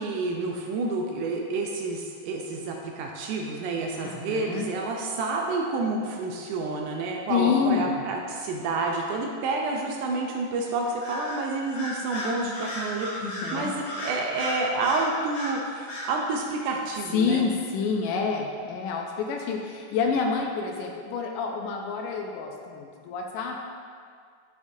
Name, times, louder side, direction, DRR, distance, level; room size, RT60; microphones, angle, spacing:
voice 1, 0.0-17.4, right 3 dB, 85° right, 0 dB, 1.8 m, -29 dB
voice 2, 4.0-4.7 7.3-8.0 13.2-13.7 17.1-23.6, left 5 dB, 80° left, 1 dB, 1.9 m, -28 dB
Bird vocalization bird call bird song, 11.0-11.4 11.7-15.6 15.9-16.1, left 1 dB, 60° left, 3.2 m, -34 dB
9.8 x 6.6 x 2.7 m, 2.1 s
omnidirectional pair, 4.3 m